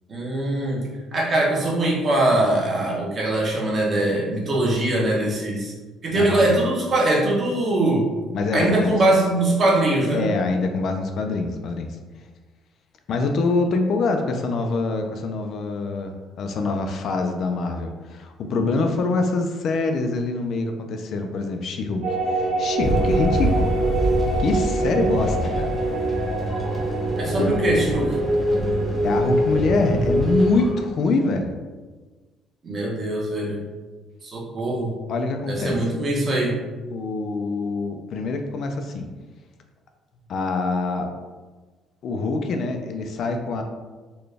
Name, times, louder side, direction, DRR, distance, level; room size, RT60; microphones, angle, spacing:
voice 1, 0.1-0.8 1.1-5.7 6.0-8.0 8.5-10.2 27.2-28.2 32.6-33.6 34.2-34.9 35.5-36.6, right 2 dB, 30° right, -3 dB, 0.8 m, -22 dB
voice 2, 6.1-6.5 8.3-8.9 10.1-12.0 13.1-23.7 24.4-25.8 27.4-27.6 29.0-31.5 35.1-35.8 36.9-39.1 40.3-41.1 42.0-43.6, left 3 dB, 50° left, 5 dB, 0.3 m, -25 dB
sound 1, 22.0-30.7, right 1 dB, 85° right, 1.1 m, -24 dB
sound 2, 22.8-30.7, right 1 dB, 5° left, 0.6 m, -28 dB
4.0 x 2.2 x 3.3 m, 1.3 s
cardioid pair, 165°, 0 cm